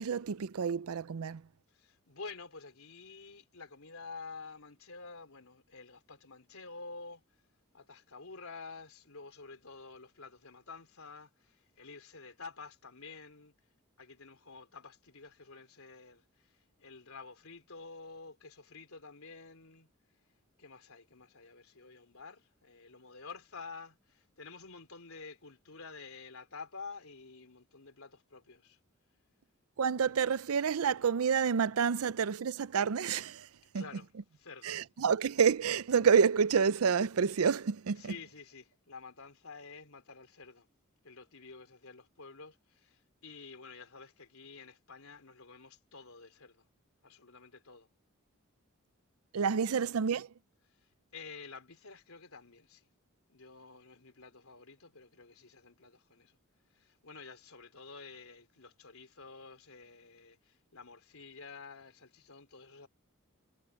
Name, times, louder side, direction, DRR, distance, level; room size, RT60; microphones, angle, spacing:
voice 1, 0.0-1.4 29.8-33.5 33.7-33.8 34.6-38.1 49.3-50.3, right 6 dB, 90° right, 0.5 m, -28 dB
voice 2, 1.7-7.2 7.7-13.5 14.0-19.9 20.6-28.8 33.7-34.8 38.0-40.7 41.0-46.7 47.0-47.9 49.7-49.8 50.7-52.9 53.3-56.4 56.7-62.9, left 4 dB, 80° left, 3.5 m, -50 dB
head